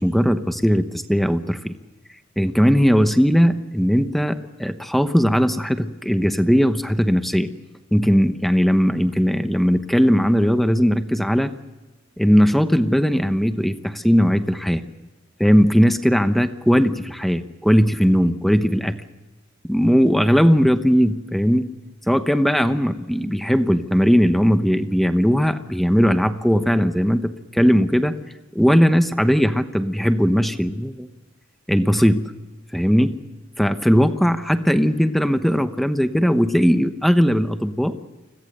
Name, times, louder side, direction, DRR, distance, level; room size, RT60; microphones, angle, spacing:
voice 1, 0.0-1.7 2.4-7.5 7.9-11.5 12.2-14.8 15.4-19.0 19.6-21.7 22.1-28.2 28.5-31.1 31.7-32.2 32.7-33.1 33.6-37.9, equal, ahead, 9 dB, 1.0 m, -18 dB
29.5 x 21.5 x 6.7 m, 1.2 s
head